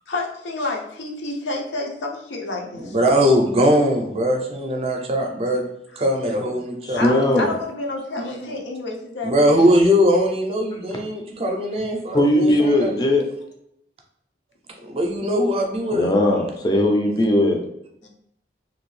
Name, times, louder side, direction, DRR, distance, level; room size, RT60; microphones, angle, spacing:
voice 1, 0.1-3.0 6.9-9.7, left 2 dB, 85° left, 1 dB, 0.6 m, -29 dB
voice 2, 2.8-5.6 6.0-7.1 9.2-13.0 14.8-16.1, equal, 35° right, 2 dB, 0.4 m, -20 dB
voice 3, 6.8-7.5 12.1-13.3 15.9-17.6, left 1 dB, 20° left, 2 dB, 0.4 m, -19 dB
2.7 x 2.6 x 3.1 m, 0.77 s
head